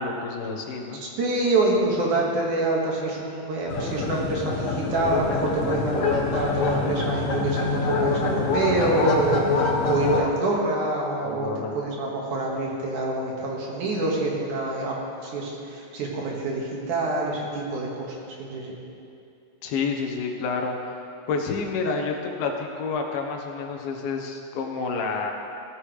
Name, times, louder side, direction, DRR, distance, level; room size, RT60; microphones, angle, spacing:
voice 1, 0.0-1.0 11.2-11.7 19.6-20.9 21.3-25.3, left 4 dB, 85° left, 2 dB, 3.0 m, -29 dB
voice 2, 1.0-11.5 11.7-14.9 15.2-18.8, right 2 dB, 60° right, -3 dB, 2.9 m, -26 dB
sound 1, 3.7-10.2, left 4 dB, 65° left, 1.5 m, -25 dB
17.0 x 13.5 x 3.2 m, 2.6 s
omnidirectional pair, 4.2 m